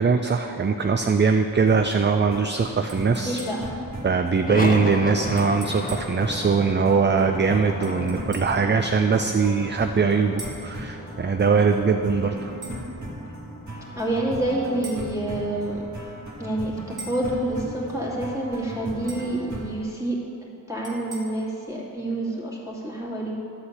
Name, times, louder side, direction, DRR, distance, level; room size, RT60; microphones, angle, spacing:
voice 1, 0.0-3.5 4.0-12.5, right 5 dB, 30° right, 6 dB, 0.4 m, -21 dB
sound 1, 1.7-19.8, right 1 dB, 50° right, 1.6 m, -37 dB
sound 2, 2.9-3.8 5.4-6.2 7.8-8.6 10.4-10.7 12.6-12.8 14.8-15.1 17.0-17.3 19.1-19.4 20.8-21.2, right 2 dB, 85° right, 1.4 m, -41 dB
voice 2, 3.2-3.7 14.0-15.8 16.4-20.2 20.7-23.4, right 1 dB, 10° right, -5 dB, 2.5 m, -28 dB
sound 3, 4.5-16.6, left 2 dB, 25° left, 0.6 m, -36 dB
11.5 x 4.3 x 8.0 m, 2.9 s
wide cardioid pair, 55°, 37 cm